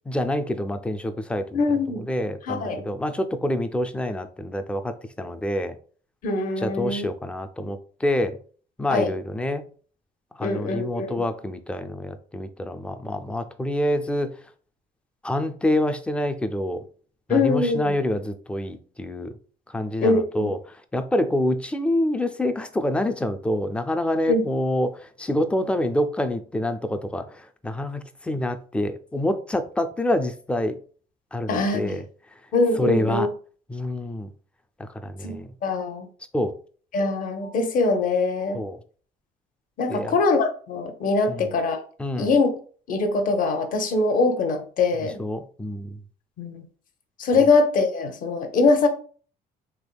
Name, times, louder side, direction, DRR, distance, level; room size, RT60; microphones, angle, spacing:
voice 1, 0.1-1.6 1.9-5.8 6.6-8.4 8.8-9.6 10.4-14.4 15.2-16.8 17.3-19.3 19.7-30.8 31.3-32.0 32.8-33.3 33.7-34.3 34.8-35.5 36.3-36.6 38.5-38.8 39.9-40.2 41.3-41.5 42.0-42.3 45.0-46.0, left 1 dB, 5° left, 0.3 m, -27 dB
voice 2, 1.5-2.0 2.4-2.9 6.2-7.1 8.9-9.1 10.4-11.2 17.3-17.9 20.0-20.5 24.3-24.5 31.5-32.0 32.5-33.3 35.2-36.1 36.9-38.6 39.8-41.8 42.2-42.5 42.9-45.2 46.4-46.6 47.2-48.9, left 3 dB, 55° left, 0.7 m, -23 dB
3.4 x 3.2 x 2.3 m
cardioid pair, 110°, 17 cm